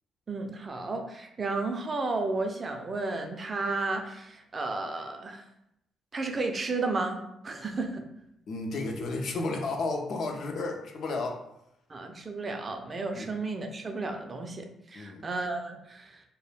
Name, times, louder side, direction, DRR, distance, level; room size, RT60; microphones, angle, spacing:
voice 1, 0.3-5.4 6.1-8.1 11.9-16.2, right 3 dB, 35° right, 5 dB, 0.4 m, -33 dB
voice 2, 8.5-11.4 13.1-13.3 14.9-15.3, left 3 dB, 65° left, 2 dB, 0.4 m, -32 dB
2.2 x 2.0 x 3.1 m, 0.80 s
cardioid pair, 90°, 0 cm